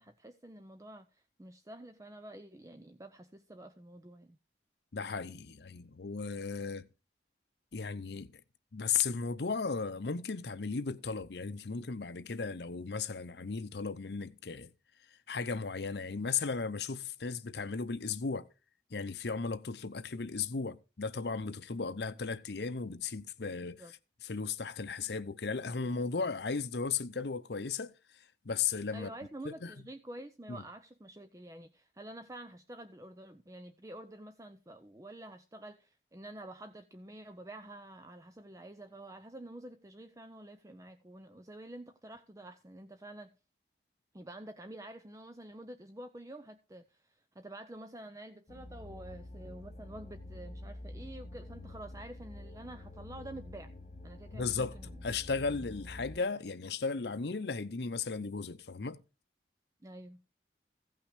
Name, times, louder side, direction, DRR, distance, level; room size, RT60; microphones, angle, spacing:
voice 1, 0.0-4.4 23.8-23.9 28.9-43.3 44.1-53.7 54.0-55.0 55.5-55.6 59.8-60.3, right 1 dB, 20° right, 0.5 m, -49 dB
voice 2, 4.9-6.9 7.7-8.3 8.7-14.7 15.3-18.5 18.9-23.8 24.2-27.9 28.4-29.1 29.4-29.7 30.5-30.6 54.3-54.8 55.0-59.0, left 5 dB, 70° left, 0.7 m, -35 dB
sound 1, 48.5-56.2, left 1 dB, 35° left, 0.9 m, -47 dB
15.5 x 5.8 x 5.0 m
head